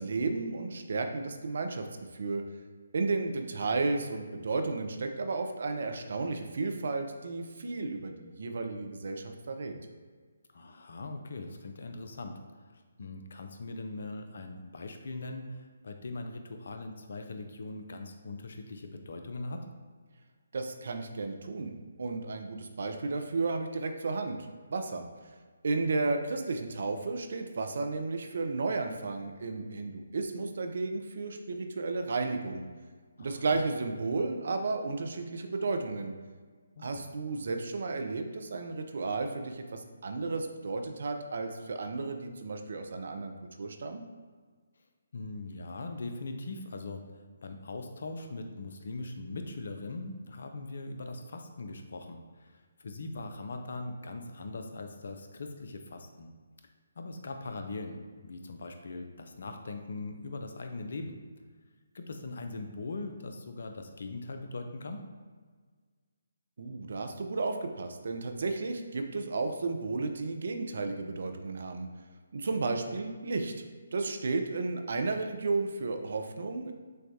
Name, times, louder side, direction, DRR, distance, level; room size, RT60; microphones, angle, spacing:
voice 1, 0.0-1.9 2.1-2.4 2.9-9.8 20.5-25.3 25.6-32.7 33.2-36.1 36.8-44.0 66.6-71.9 72.3-73.5 73.9-76.7, right 3 dB, 55° right, 5 dB, 0.4 m, -33 dB
voice 2, 10.5-12.4 12.7-19.7 33.2-33.6 36.8-37.0 45.1-47.1 47.4-56.3 57.0-61.2 61.9-65.1, left 2 dB, 60° left, 5 dB, 0.4 m, -41 dB
6.4 x 2.2 x 2.7 m, 1.5 s
figure-of-eight pair, 140°, 0 cm